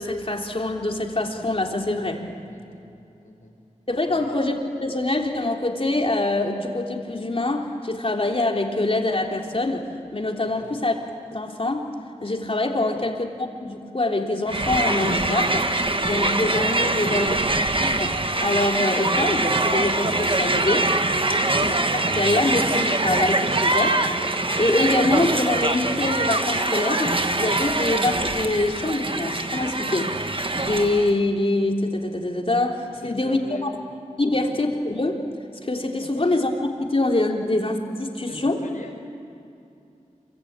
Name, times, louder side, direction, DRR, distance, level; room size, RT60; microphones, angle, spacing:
voice 1, 0.0-2.2 3.9-10.9 11.3-11.9 12.2-13.3 13.6-15.7 16.0-17.4 17.8-20.9 21.6-21.7 22.1-24.0 24.6-30.1 30.5-33.7 34.2-35.3 35.6-36.5 36.8-38.6, left 2 dB, 45° left, 1 dB, 3.4 m, -24 dB
voice 2, 2.5-2.8 3.2-3.5 4.1-4.3 10.4-10.8 12.9-13.1 16.8-17.5 33.0-33.7 34.3-34.5 36.0-36.3 38.3-39.0, left 2 dB, 85° left, 1 dB, 5.3 m, -41 dB
Crowd, 14.5-31.2, right 2 dB, 40° right, 1.5 m, -23 dB
27.0 x 24.5 x 8.9 m, 2.6 s
wide cardioid pair, 55°, 13 cm